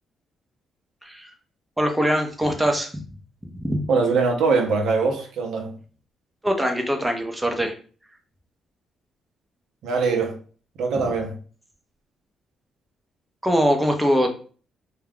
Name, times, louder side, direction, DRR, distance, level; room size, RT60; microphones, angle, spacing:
voice 1, 1.0-1.3 1.8-3.0 3.4-3.9 6.4-7.7 13.4-14.3, equal, 5° right, 0.5 m, -22 dB
voice 2, 3.9-5.8 9.8-10.4 10.8-11.4, right 4 dB, 80° right, 0.6 m, -22 dB
2.3 x 2.2 x 3.3 m
cardioid pair, 90°, 0 cm